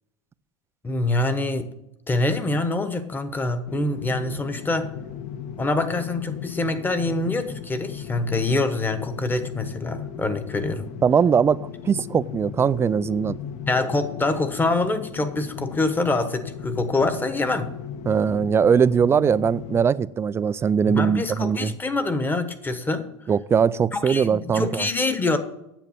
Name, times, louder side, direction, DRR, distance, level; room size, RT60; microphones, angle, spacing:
voice 1, 0.8-1.7 2.1-4.9 5.6-10.9 13.7-17.7 20.9-23.1 23.9-25.4, left 2 dB, 10° left, 1.1 m, -25 dB
sound 1, 3.7-19.9, left 9 dB, 40° left, 0.9 m, -36 dB
voice 2, 11.0-11.6 11.8-13.4 18.1-21.7 23.3-24.9, right 7 dB, 15° right, 0.3 m, -20 dB
9.2 x 7.3 x 8.7 m
supercardioid pair, 125°, 16 cm